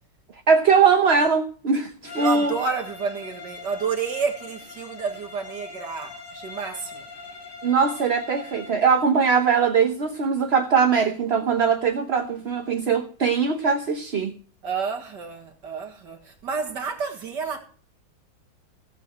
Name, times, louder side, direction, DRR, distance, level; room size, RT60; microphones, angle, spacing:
voice 1, 0.5-2.6 7.6-14.3, right 5 dB, 45° right, 1.0 m, -21 dB
Bowed string instrument, 2.0-8.8, left 4 dB, 65° left, 5.6 m, -41 dB
voice 2, 2.2-7.0 14.6-17.6, right 5 dB, 65° right, 2.3 m, -30 dB
15.5 x 8.1 x 4.3 m
omnidirectional pair, 2.1 m